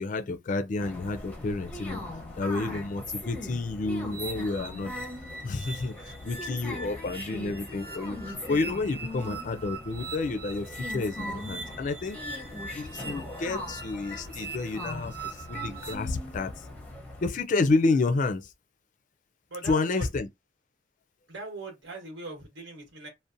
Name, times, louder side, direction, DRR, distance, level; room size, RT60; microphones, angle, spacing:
voice 1, 0.0-2.0 2.4-5.0 5.4-12.4 12.7-15.2 15.5-16.5 17.2-18.5 19.7-20.3, left 3 dB, 45° left, 0.4 m, -30 dB
sound 1, 0.8-17.3, left 1 dB, 10° left, 0.6 m, -40 dB
sound 2, 4.1-16.0, right 3 dB, 50° right, 0.9 m, -42 dB
voice 2, 19.5-20.1 21.3-23.1, right 3 dB, 80° right, 1.2 m, -40 dB
2.6 x 2.1 x 2.5 m
head